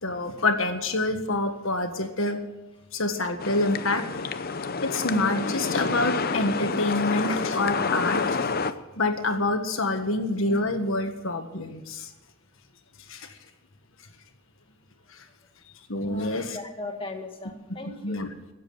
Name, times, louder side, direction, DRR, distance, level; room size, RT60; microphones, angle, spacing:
voice 1, 0.0-2.4 2.9-4.0 4.8-8.5 8.9-12.1 13.1-13.3 15.9-16.6 18.0-18.3, left 2 dB, 65° left, 6 dB, 1.7 m, -27 dB
sound 1, 3.4-8.7, left 4 dB, 45° left, 0.7 m, -28 dB
voice 2, 16.0-18.3, left 2 dB, 25° left, 3 dB, 2.0 m, -38 dB
16.0 x 7.8 x 8.9 m, 1.1 s
head